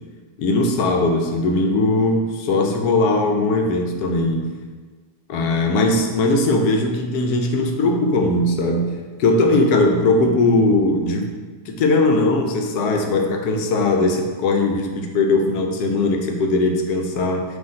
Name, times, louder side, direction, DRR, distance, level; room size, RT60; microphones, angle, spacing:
voice 1, 0.4-4.5 5.3-8.9 9.2-11.3 11.7-17.4, left 2 dB, 80° left, 3 dB, 1.1 m, -19 dB
4.0 x 2.9 x 3.7 m, 1.4 s
omnidirectional pair, 1.6 m